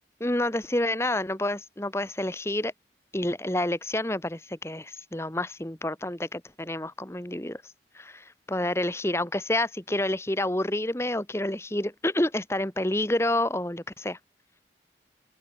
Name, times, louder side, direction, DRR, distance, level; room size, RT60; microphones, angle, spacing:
voice 1, 0.2-2.7 3.1-7.6 7.9-14.2, left 1 dB, 15° left, 1.3 m, -28 dB
open air
head